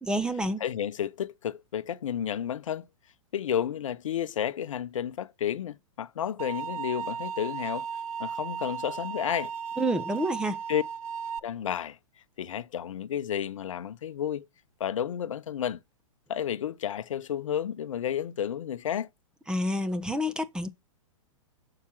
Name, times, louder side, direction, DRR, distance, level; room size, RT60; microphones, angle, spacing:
voice 1, 0.0-0.6 9.8-10.6 19.5-20.7, equal, 5° right, 0.8 m, -28 dB
voice 2, 0.6-2.9 3.3-7.9 8.2-9.5 10.7-10.8 11.4-12.0 12.4-14.5 14.8-15.8 16.3-19.1, left 9 dB, 65° left, 0.6 m, -31 dB
sound 1, 6.4-11.4, right 7 dB, 85° right, 0.4 m, -35 dB
7.1 x 4.8 x 5.9 m
figure-of-eight pair, 115°, 18 cm